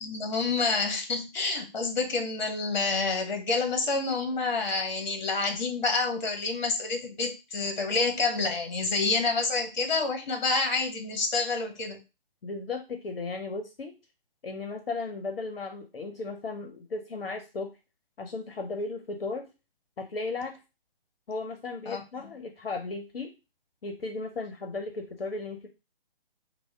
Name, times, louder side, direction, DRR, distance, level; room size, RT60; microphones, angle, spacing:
voice 1, 0.0-12.0 21.9-22.0, left 3 dB, 50° left, 4 dB, 0.9 m, -28 dB
voice 2, 12.4-13.9 14.4-17.7 18.2-19.5 20.0-20.6 21.3-23.3 23.8-25.7, left 3 dB, 70° left, 4 dB, 0.7 m, -35 dB
3.5 x 2.1 x 3.5 m, 0.28 s
figure-of-eight pair, 140°, 30 cm